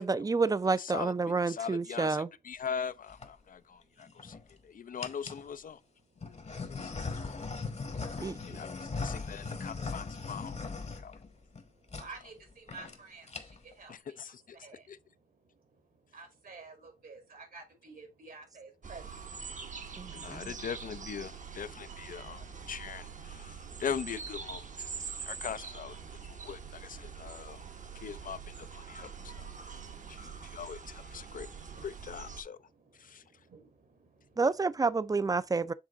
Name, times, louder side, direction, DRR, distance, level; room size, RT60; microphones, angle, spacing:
voice 1, 0.0-2.3 8.2-8.6 20.0-20.5 34.4-35.7, right 4 dB, 25° right, 0.4 m, -29 dB
voice 2, 0.7-4.4 4.6-5.8 6.6-7.4 8.2-10.6 10.9-11.2 13.9-15.0 20.1-27.6 28.0-29.5 30.1-31.5 31.8-32.6 32.9-33.2, left 7 dB, 70° left, 0.5 m, -41 dB
sound 1, 2.9-3.3 4.0-4.5 5.0-5.5 6.2-11.6 11.9-12.1 12.4-12.5 12.7-13.0 13.2-13.7, left 4 dB, 50° left, 1.1 m, -39 dB
voice 3, 12.0-13.3 13.8-13.9 14.6-14.8 16.1-19.0 33.5-33.6, right 4 dB, 80° right, 2.3 m, -49 dB
sound 2, 18.8-32.4, right 6 dB, 60° right, 0.9 m, -44 dB
7.3 x 3.7 x 3.7 m
wide cardioid pair, 85°, 15 cm